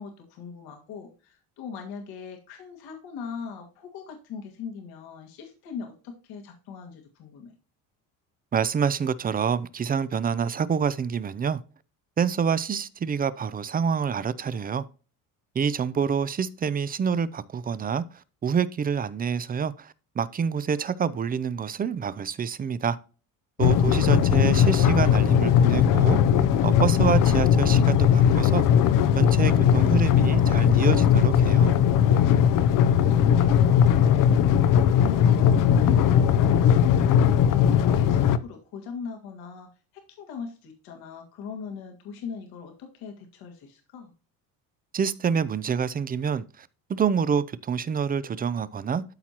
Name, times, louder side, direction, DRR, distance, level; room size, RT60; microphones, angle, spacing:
voice 1, 0.0-7.5 16.0-16.1 23.7-24.3 32.7-44.1, left 6 dB, 75° left, 1.9 m, -40 dB
voice 2, 8.5-11.6 12.2-14.8 15.5-23.0 23.6-26.2 26.6-28.6 29.2-31.7 44.9-49.0, right 6 dB, 25° right, 0.5 m, -27 dB
sound 1, 23.6-38.4, left 8 dB, 60° left, 0.7 m, -19 dB
12.5 x 4.4 x 2.9 m
cardioid pair, 110°, 37 cm